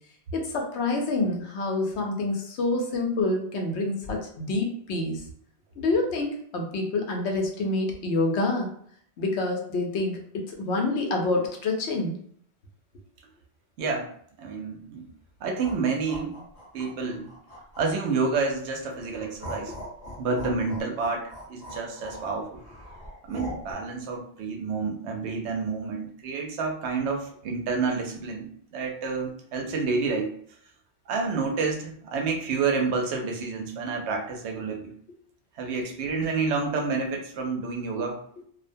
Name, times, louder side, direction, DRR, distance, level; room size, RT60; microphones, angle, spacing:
voice 1, 0.3-5.2 5.8-8.7 9.2-12.2 20.1-20.2, left 2 dB, 85° left, 1 dB, 0.9 m, -27 dB
voice 2, 13.8-14.1 14.4-15.0 15.4-16.5 16.7-17.3 17.8-19.7 20.2-22.6 23.3-30.3 31.1-34.9 35.6-38.2, right 4 dB, 90° right, 2 dB, 0.9 m, -29 dB
sound 1, 15.6-18.5 18.9-23.7, equal, 40° left, 0.7 m, -41 dB
2.4 x 2.1 x 2.6 m, 0.63 s
omnidirectional pair, 1.1 m